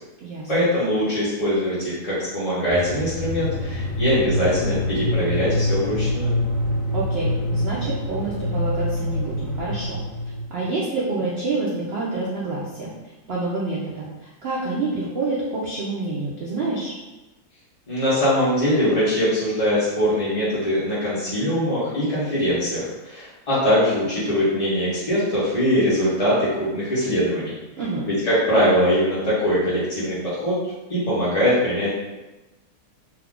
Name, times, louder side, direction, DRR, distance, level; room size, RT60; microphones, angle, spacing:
voice 1, 0.5-6.3 17.9-27.5 28.1-30.5 30.9-31.9, equal, 35° left, -10 dB, 0.6 m, -22 dB
sound 1, 2.7-10.5, left 1 dB, 65° left, 1.1 m, -25 dB
voice 2, 6.9-10.0 10.5-12.9 13.3-14.1 14.4-16.9 27.8-28.1, right 3 dB, 75° right, -6 dB, 0.5 m, -27 dB
2.7 x 2.4 x 3.6 m, 1.1 s
omnidirectional pair, 1.7 m